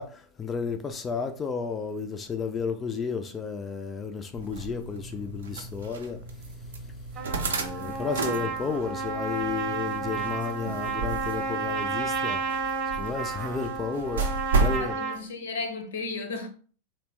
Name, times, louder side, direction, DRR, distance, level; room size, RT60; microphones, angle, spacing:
voice 1, 0.0-6.2 7.3-15.0, left 5 dB, 20° left, 0.3 m, -33 dB
sound 1, 4.4-14.8, right 3 dB, 65° right, 0.4 m, -33 dB
Trumpet, 7.2-15.2, right 4 dB, 30° right, 0.8 m, -31 dB
voice 2, 14.5-16.5, left 3 dB, 60° left, 0.6 m, -35 dB
2.9 x 2.1 x 2.9 m
figure-of-eight pair, 90°, 0 cm